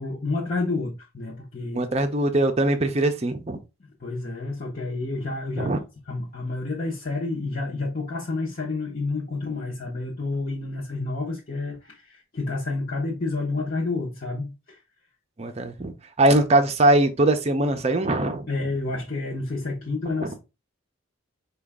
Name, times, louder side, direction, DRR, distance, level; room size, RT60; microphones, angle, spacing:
voice 1, 0.0-1.8 4.0-5.7 6.1-14.8 18.5-20.3, left 3 dB, 40° left, 0.8 m, -29 dB
voice 2, 1.7-3.6 5.6-5.8 15.4-18.5 20.2-20.3, right 1 dB, 30° right, 0.5 m, -21 dB
4.9 x 2.3 x 3.4 m
head